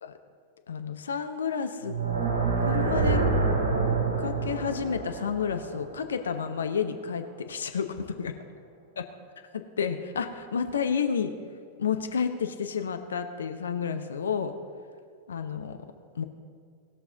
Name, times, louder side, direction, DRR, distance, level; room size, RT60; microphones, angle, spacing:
voice 1, 0.7-1.9 2.7-3.2 4.2-8.3 9.5-11.3 11.8-14.5 15.3-15.8 16.2-16.3, left 6 dB, 70° left, 7 dB, 0.8 m, -30 dB
sound 1, 1.8-7.0, right 4 dB, 70° right, 2.4 m, -27 dB
19.5 x 6.9 x 3.9 m, 2.3 s
figure-of-eight pair, 90°, 0 cm